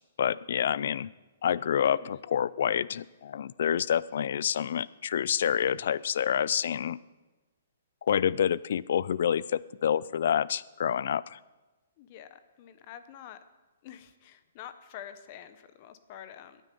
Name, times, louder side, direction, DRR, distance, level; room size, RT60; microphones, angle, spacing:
voice 1, 0.2-1.1 1.4-7.0 8.0-11.4, left 9 dB, 55° left, 20 dB, 0.4 m, -28 dB
voice 2, 12.0-13.4 13.8-16.6, left 10 dB, 30° left, 11 dB, 0.7 m, -47 dB
21.0 x 9.1 x 5.4 m, 1.2 s
hypercardioid pair, 170°, 0 cm